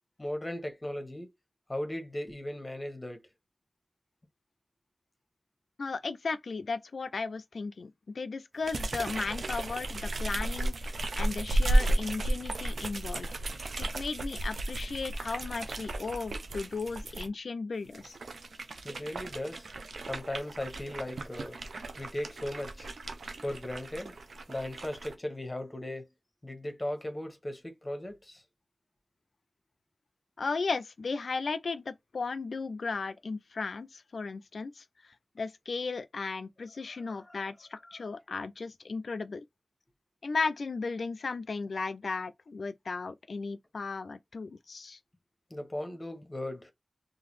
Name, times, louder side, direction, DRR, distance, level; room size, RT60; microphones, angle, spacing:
voice 1, 0.2-1.3 1.7-3.2 18.8-19.6 20.1-21.6 22.0-22.9 23.4-24.1 24.5-26.1 26.4-28.4 37.1-37.4 37.9-38.0 45.5-46.7, left 1 dB, 30° left, 1.1 m, -37 dB
voice 2, 5.8-10.9 11.2-13.3 13.8-18.2 30.4-34.8 35.4-39.4 40.2-45.0, left 4 dB, 80° left, 0.3 m, -35 dB
sound 1, 8.6-17.3 17.9-25.1, right 1 dB, 85° right, 0.5 m, -33 dB
3.8 x 2.6 x 3.1 m
cardioid pair, 40°, 0 cm